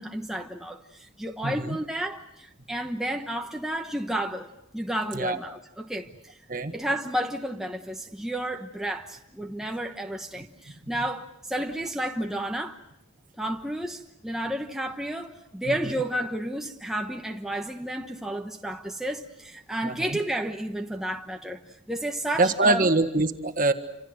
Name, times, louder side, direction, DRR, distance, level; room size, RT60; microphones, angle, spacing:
voice 1, 0.0-6.4 6.7-12.8 13.4-21.6 21.9-22.9, right 1 dB, ahead, 1.1 m, -32 dB
voice 2, 1.4-1.8 5.1-5.4 6.5-6.7 15.7-16.0 19.8-20.2 22.4-23.7, right 2 dB, 40° right, 1.6 m, -24 dB
29.0 x 26.5 x 6.5 m
head